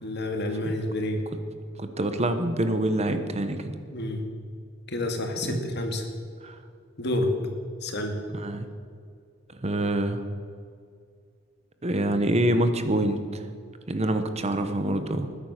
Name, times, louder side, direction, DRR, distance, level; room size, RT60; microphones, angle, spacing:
voice 1, 0.0-1.2 3.9-4.2 4.9-6.0 7.0-7.3 7.8-8.2, left 1 dB, 60° left, 4 dB, 2.4 m, -29 dB
voice 2, 1.8-3.7 5.4-5.6 6.4-6.6 8.3-8.7 9.6-10.2 11.8-13.4 13.9-15.3, right 1 dB, 35° right, 8 dB, 1.1 m, -26 dB
20.5 x 10.0 x 6.6 m, 2.3 s
head